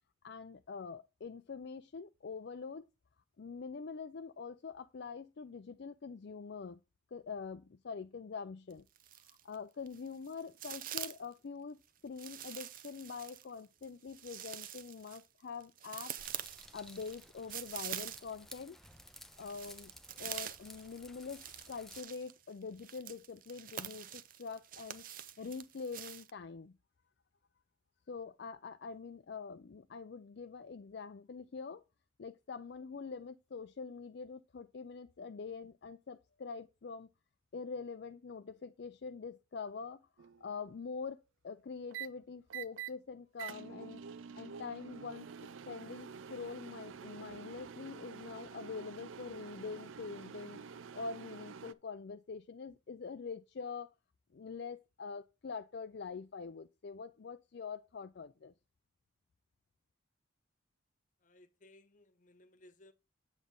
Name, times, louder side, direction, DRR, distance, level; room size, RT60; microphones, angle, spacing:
voice 1, 0.2-2.9 3.4-6.8 7.1-8.9 9.4-16.1 16.7-18.8 19.4-19.9 20.2-25.0 25.4-26.7 28.1-31.8 32.2-37.1 37.5-44.0 44.4-50.6 50.9-53.9 54.3-58.5, left 5 dB, 55° left, 0.4 m, -45 dB
sound 1, 8.7-9.6 9.9-11.3 12.2-18.5 18.8-26.3, right 11 dB, 45° right, 0.5 m, -46 dB
sound 2, 16.2-22.0, left 1 dB, ahead, 0.6 m, -56 dB
sound 3, 40.2-40.5 41.9-42.1 42.5-42.9 43.4-51.7, right 7 dB, 90° right, 0.5 m, -48 dB
voice 2, 61.2-62.9, left 1 dB, 40° left, 1.0 m, -61 dB
8.2 x 7.4 x 3.8 m
head